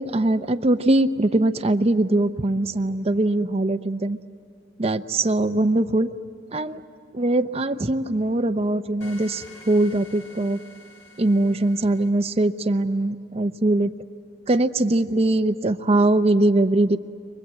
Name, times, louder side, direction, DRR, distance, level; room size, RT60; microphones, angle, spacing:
voice 1, 0.0-4.2 4.8-6.1 6.5-6.8 7.1-10.6 11.2-13.9 14.5-17.0, right 2 dB, 30° right, 8 dB, 0.7 m, -21 dB
sound 1, 9.0-12.1, left 2 dB, 60° left, 4.8 m, -47 dB
29.5 x 24.0 x 8.3 m, 2.3 s
head